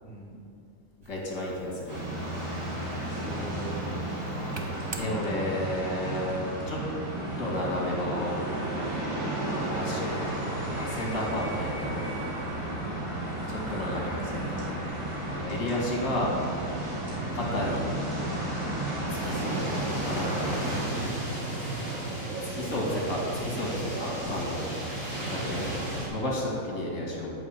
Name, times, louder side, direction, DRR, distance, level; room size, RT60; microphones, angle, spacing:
voice 1, 0.0-0.3 3.1-4.3 12.8-13.6 16.9-17.2 22.6-22.8, right 1 dB, 5° left, -8 dB, 2.1 m, -42 dB
sound 1, 1.0-5.7, right 4 dB, 45° right, 0.3 m, -47 dB
voice 2, 1.1-2.1 5.0-6.3 6.7-6.8 7.4-8.4 8.7-8.9 9.6-12.1 13.5-14.8 15.2-16.3 17.3-18.0 19.1-20.6 22.4-24.7 25.3-25.8 26.1-27.3, left 1 dB, 70° left, -2 dB, 2.2 m, -32 dB
sound 2, 1.9-20.8, right 1 dB, 20° right, 1.6 m, -33 dB
sound 3, 19.1-26.1, right 1 dB, 70° right, 2.7 m, -34 dB
8.4 x 4.8 x 7.2 m, 2.4 s
omnidirectional pair, 1.4 m